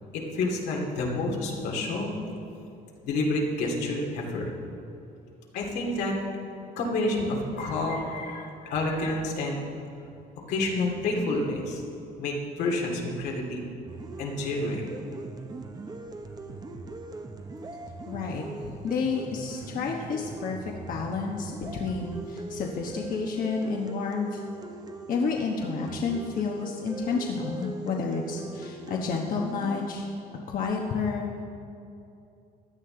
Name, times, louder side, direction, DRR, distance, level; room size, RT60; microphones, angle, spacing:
voice 1, 0.1-2.1 3.0-4.5 5.5-6.2 6.8-9.6 10.5-11.8 12.2-13.6 14.2-14.9 19.6-19.7 20.0-20.1, left 2 dB, 85° left, -1 dB, 2.3 m, -29 dB
sound 1, 13.9-29.9, right 2 dB, 25° right, 0.9 m, -40 dB
voice 2, 18.1-18.4 18.8-20.6 20.9-24.4 25.1-30.0 30.5-31.4, left 5 dB, 55° left, 0 dB, 1.1 m, -30 dB
16.0 x 10.5 x 3.9 m, 2.7 s
cardioid pair, 110°, 17 cm